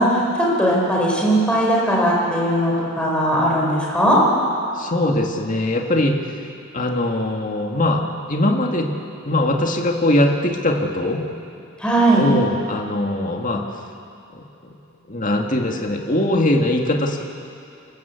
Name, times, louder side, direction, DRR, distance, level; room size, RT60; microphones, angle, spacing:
voice 1, 0.0-4.2 11.8-12.3, right 1 dB, 5° left, -4 dB, 4.7 m, -18 dB
voice 2, 4.8-6.2 6.7-8.9 9.2-11.2 12.2-13.6 14.3-14.7 15.1-17.2, left 1 dB, 40° left, 1 dB, 2.0 m, -21 dB
29.5 x 13.0 x 8.3 m, 2.5 s
head